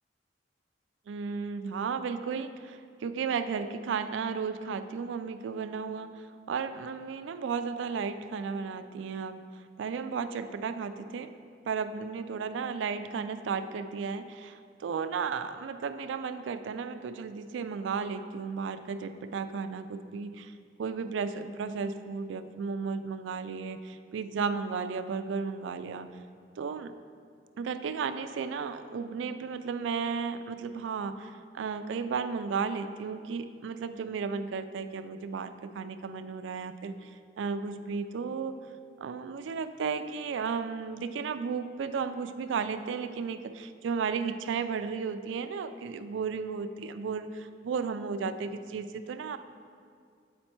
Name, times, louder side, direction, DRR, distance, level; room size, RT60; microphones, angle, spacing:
voice 1, 1.1-9.4 9.8-11.3 11.7-20.5 20.8-26.1 26.6-26.9 27.6-38.6 39.0-49.4, right 5 dB, 80° right, 11 dB, 0.3 m, -34 dB
7.9 x 4.3 x 4.4 m, 2.2 s
head